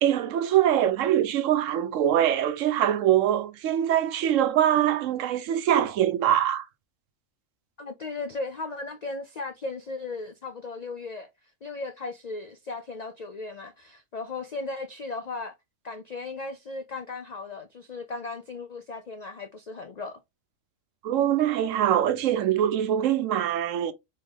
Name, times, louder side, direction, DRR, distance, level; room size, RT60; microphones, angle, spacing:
voice 1, 0.0-6.6 21.0-23.9, right 11 dB, 75° right, 0.9 m, -23 dB
voice 2, 7.8-11.3 11.6-15.5 15.8-20.2, left 3 dB, 70° left, 0.4 m, -36 dB
4.1 x 3.8 x 3.3 m
omnidirectional pair, 1.4 m